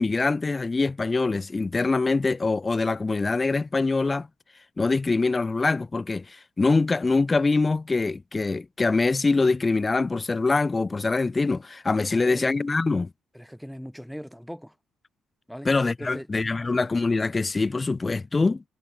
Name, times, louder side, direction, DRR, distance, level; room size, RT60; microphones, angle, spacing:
voice 1, 0.0-4.3 4.8-13.1 15.6-18.6, left 3 dB, 25° left, 1.1 m, -24 dB
voice 2, 12.1-12.5 13.3-14.8 15.5-15.7 16.0-16.3, equal, ahead, 5.3 m, -39 dB
cardioid pair, 90°, 0 cm